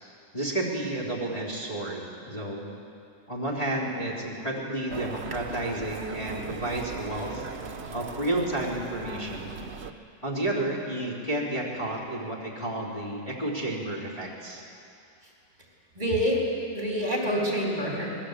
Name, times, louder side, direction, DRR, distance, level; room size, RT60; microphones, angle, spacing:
voice 1, 0.3-2.7 3.3-7.5 7.9-9.5 10.2-14.6, right 1 dB, 20° left, -6 dB, 4.0 m, -31 dB
sound 1, 4.9-9.9, right 5 dB, 40° right, 1.2 m, -38 dB
voice 2, 15.9-16.4 16.7-18.2, equal, 25° right, -3 dB, 4.4 m, -27 dB
27.0 x 20.5 x 8.4 m, 2.5 s
omnidirectional pair, 1.9 m